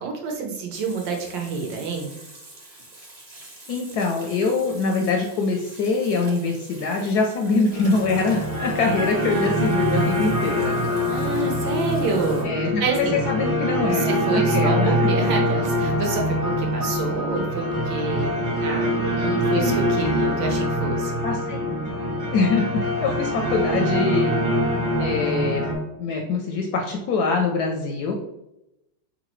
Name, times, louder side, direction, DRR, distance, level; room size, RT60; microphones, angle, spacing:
voice 1, 0.0-2.1 11.1-12.5 12.8-13.3 13.9-18.3 18.6-21.1, right 5 dB, 70° right, 2 dB, 1.5 m, -28 dB
Water tap faucet / Sink (filling or washing), 0.7-12.4, right 2 dB, 35° right, 0.7 m, -46 dB
voice 2, 3.7-10.8 12.4-15.1 19.5-19.8 21.2-21.7 22.3-24.4 25.0-25.6 26.0-28.1, left 4 dB, 75° left, 1 dB, 0.9 m, -24 dB
sound 1, 7.7-25.7, equal, 55° right, 1.7 m, -24 dB
4.0 x 3.8 x 3.0 m, 0.87 s
omnidirectional pair, 2.1 m